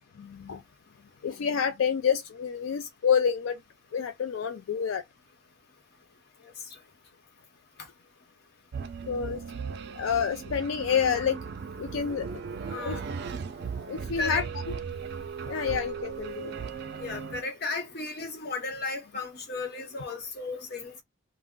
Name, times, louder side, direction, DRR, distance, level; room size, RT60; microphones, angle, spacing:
voice 1, 0.2-0.6 1.2-3.6 3.9-5.0 9.1-9.4 9.9-11.4 11.8-12.3 12.9-13.0 13.9-14.4 15.5-16.5, left 7 dB, 90° left, 0.4 m, -28 dB
sound 1, 8.7-17.4, right 6 dB, 55° right, 0.4 m, -37 dB
voice 2, 12.7-13.1 14.2-14.5 17.0-21.0, left 3 dB, 55° left, 0.9 m, -34 dB
2.4 x 2.0 x 3.6 m
head